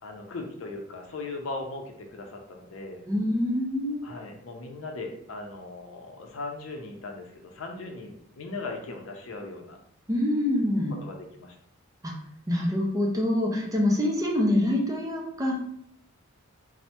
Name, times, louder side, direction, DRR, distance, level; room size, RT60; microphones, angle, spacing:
voice 1, 0.0-3.0 4.0-9.8 11.0-11.6, left 3 dB, 75° left, 3 dB, 0.5 m, -38 dB
voice 2, 3.1-4.1 10.1-10.9 12.0-12.1 12.5-15.5, left 1 dB, 15° right, -1 dB, 0.5 m, -25 dB
3.2 x 2.0 x 2.8 m, 0.69 s
head